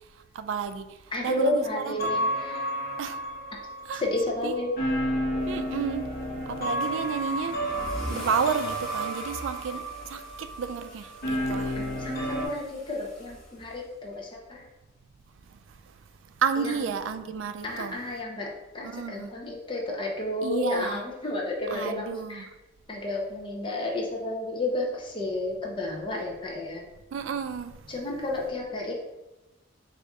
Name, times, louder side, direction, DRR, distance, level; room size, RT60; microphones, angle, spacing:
voice 1, 0.3-1.0 1.2-2.1 3.0-3.2 3.9-4.0 4.4-4.6 5.4-6.1 6.4-7.7 8.1-11.7 16.4-18.0 18.8-19.3 20.4-21.0 21.7-22.5 27.1-27.9, right 6 dB, 70° right, 0.3 m, -31 dB
voice 2, 1.1-2.6 3.9-4.8 11.5-14.7 16.6-16.9 17.6-22.5 22.9-26.8 27.9-28.9, left 2 dB, 25° left, 0.5 m, -31 dB
sound 1, 1.6-12.5, equal, 50° left, 0.9 m, -32 dB
Car / Engine starting / Accelerating revving vroom, 6.8-14.1, equal, 5° left, 0.9 m, -43 dB
4.0 x 2.5 x 3.4 m
head